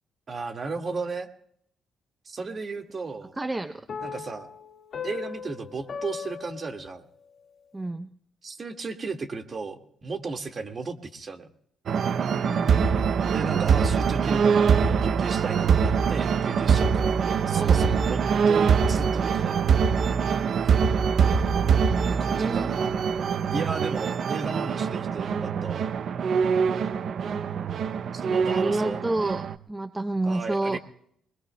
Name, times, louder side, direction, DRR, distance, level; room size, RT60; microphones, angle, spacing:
voice 1, 0.3-1.3 2.2-3.4 4.0-4.5 5.0-7.0 8.4-11.5 13.3-19.6 22.2-22.9 23.5-25.9 28.1-29.0 30.3-30.8, right 4 dB, 40° right, 5 dB, 1.8 m, -34 dB
voice 2, 3.4-3.7 7.7-8.1 12.4-12.9 17.5-18.1 21.8-22.7 28.2-30.8, right 2 dB, 15° right, 10 dB, 0.6 m, -30 dB
sound 1, 3.9-7.4, left 6 dB, 50° left, 1.8 m, -38 dB
sound 2, 11.9-29.5, right 6 dB, 60° right, 0.6 m, -23 dB
25.5 x 20.5 x 2.2 m, 0.67 s
cardioid pair, 90°, 0 cm